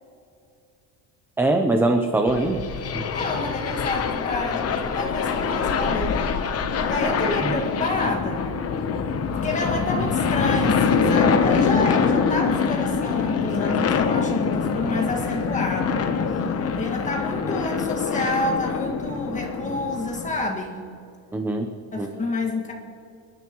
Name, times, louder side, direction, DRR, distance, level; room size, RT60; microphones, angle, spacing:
voice 1, 1.4-2.6 2.9-3.0 7.4-7.6 21.3-21.7 22.0-22.1, right 2 dB, 5° right, 4 dB, 0.6 m, -22 dB
sound 1, 2.3-20.5, left 5 dB, 35° left, 0.9 m, -24 dB
voice 2, 3.1-6.2 6.9-8.6 9.3-16.1 16.8-20.9 21.9-22.7, left 2 dB, 20° left, 1 dB, 1.9 m, -29 dB
28.5 x 10.5 x 3.1 m, 2.6 s
cardioid pair, 165°, 40 cm